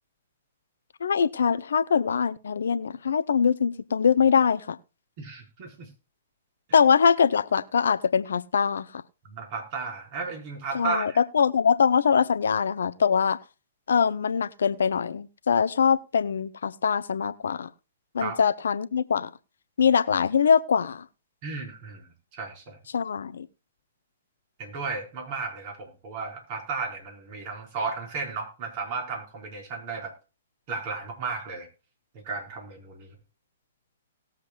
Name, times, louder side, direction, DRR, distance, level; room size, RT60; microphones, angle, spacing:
voice 1, 1.0-4.8 6.7-8.9 10.7-13.4 13.9-17.7 18.1-19.3 19.8-21.0 22.9-23.5, left 6 dB, 70° left, 0.7 m, -23 dB
voice 2, 5.2-5.9 9.2-11.2 18.2-18.4 21.4-22.8 24.6-30.1 30.7-31.7 32.2-33.1, right 4 dB, 40° right, 4.9 m, -34 dB
19.5 x 7.3 x 2.4 m
figure-of-eight pair, 120°, 0 cm